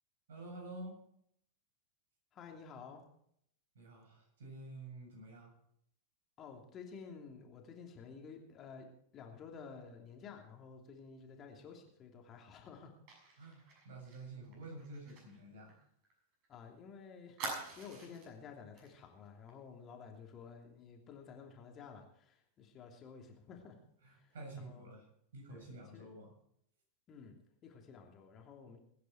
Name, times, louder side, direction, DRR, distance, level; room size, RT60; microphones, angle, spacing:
voice 1, 0.3-1.0 3.7-5.5 13.4-15.8 24.0-25.1 25.3-26.3, right 2 dB, 60° right, 1 dB, 7.2 m, -49 dB
voice 2, 2.3-3.0 6.4-8.9 9.1-12.9 13.2-13.4 16.5-17.4 17.8-23.8 24.1-24.9 25.5-26.1 27.1-27.3 27.6-28.8, left 6 dB, 30° left, 2 dB, 2.9 m, -52 dB
Fire, 13.1-16.5 16.8-16.9 17.4-18.3 18.8-18.9 19.3-19.5, right 3 dB, 40° right, 6.7 m, -47 dB
21.5 x 10.0 x 4.6 m, 0.70 s
figure-of-eight pair, 90°, 0 cm